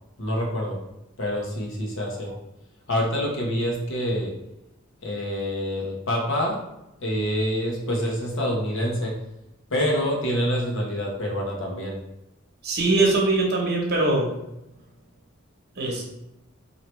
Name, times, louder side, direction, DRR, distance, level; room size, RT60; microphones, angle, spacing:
voice 1, 0.2-0.8 1.2-2.3 2.9-4.3 5.0-6.6 7.0-9.1 9.7-12.0, equal, 65° left, -2 dB, 1.1 m, -26 dB
voice 2, 12.6-14.3 15.8-16.0, right 2 dB, 50° right, -1 dB, 1.0 m, -22 dB
4.4 x 2.8 x 3.2 m, 0.89 s
head